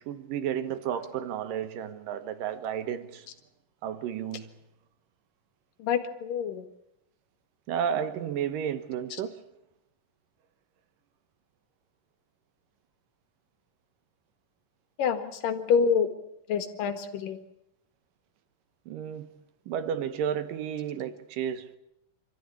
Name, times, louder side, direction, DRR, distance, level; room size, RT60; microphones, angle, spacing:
voice 1, 0.0-3.3 3.8-4.5 7.7-9.4 18.9-19.3 19.7-21.8, right 9 dB, 80° right, 2.9 m, -32 dB
voice 2, 5.8-6.7 15.0-16.1 16.5-17.4, left 6 dB, 80° left, 3.4 m, -27 dB
26.0 x 14.0 x 9.9 m
omnidirectional pair, 3.8 m